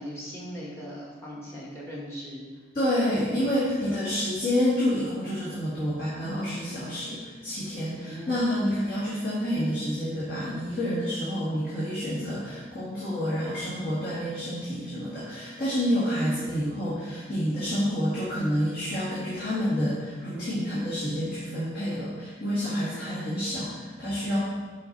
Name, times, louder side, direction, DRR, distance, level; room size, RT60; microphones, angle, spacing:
voice 1, 0.0-2.4 8.0-8.4, equal, 15° left, -4 dB, 1.4 m, -39 dB
voice 2, 2.7-24.4, equal, 50° left, -9 dB, 1.7 m, -28 dB
5.8 x 5.2 x 4.0 m, 1.4 s
head